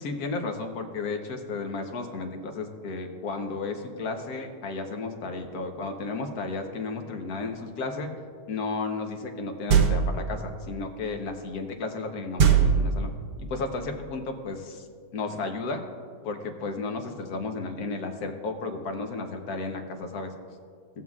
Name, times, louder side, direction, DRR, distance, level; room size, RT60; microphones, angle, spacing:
voice 1, 0.0-8.1 8.5-13.1 13.4-14.9 15.1-15.8 16.2-20.3, left 3 dB, 65° left, 4 dB, 1.4 m, -33 dB
sound 1, 9.7-10.3 12.4-13.4, right 6 dB, 85° right, 1.4 m, -21 dB
18.5 x 7.4 x 2.4 m, 2.1 s
omnidirectional pair, 1.8 m